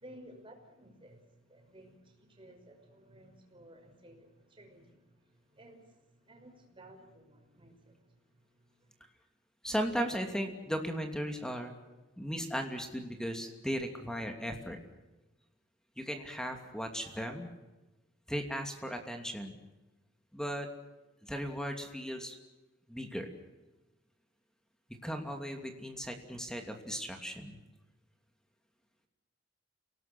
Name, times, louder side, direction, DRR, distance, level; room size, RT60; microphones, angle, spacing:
voice 1, 0.0-5.0 5.5-5.8 6.2-8.0, right 1 dB, 25° right, 3 dB, 5.8 m, -55 dB
voice 2, 9.6-11.7 12.2-14.8 16.0-17.5 18.3-19.6 20.3-20.7 21.2-22.4 22.9-23.3 25.0-27.6, equal, 5° left, 4 dB, 2.8 m, -36 dB
28.5 x 19.0 x 6.2 m, 1.1 s
head